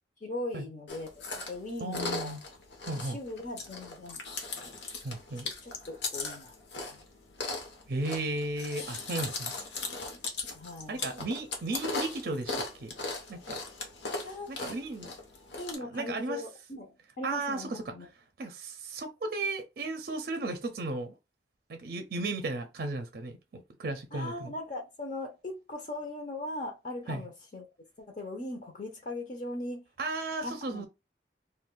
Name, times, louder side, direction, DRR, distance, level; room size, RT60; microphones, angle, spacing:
voice 1, 0.2-2.3 3.0-4.2 5.4-7.0 10.1-10.2 10.5-11.1 14.2-14.8 15.6-18.1 24.1-27.7 28.0-29.8 30.4-30.9, left 2 dB, 45° left, 0.6 m, -39 dB
Chewing mastication, 0.9-15.8, left 3 dB, 75° left, 0.9 m, -38 dB
voice 2, 1.8-2.4 2.8-3.2 5.0-5.5 7.9-9.5 10.9-12.9 13.3-13.6 14.5-15.1 15.9-16.4 17.2-17.9 18.4-21.2 21.7-24.5 27.1-27.2 30.0-30.9, right 2 dB, 55° right, 0.5 m, -35 dB
2.5 x 2.2 x 3.7 m
head